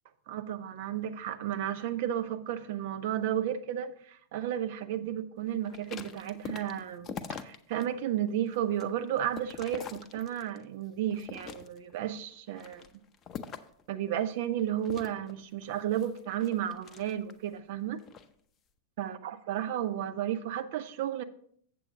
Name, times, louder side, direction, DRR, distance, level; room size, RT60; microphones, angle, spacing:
voice 1, 0.3-12.9 13.9-18.0 19.0-21.2, right 10 dB, 50° right, 10 dB, 0.6 m, -33 dB
sound 1, 5.6-7.9 8.3-10.6 11.1-12.0 12.5-13.8 14.8-17.5 18.0-18.3, left 7 dB, 30° left, 0.6 m, -44 dB
7.6 x 7.6 x 3.9 m, 0.63 s
figure-of-eight pair, 90°, 0 cm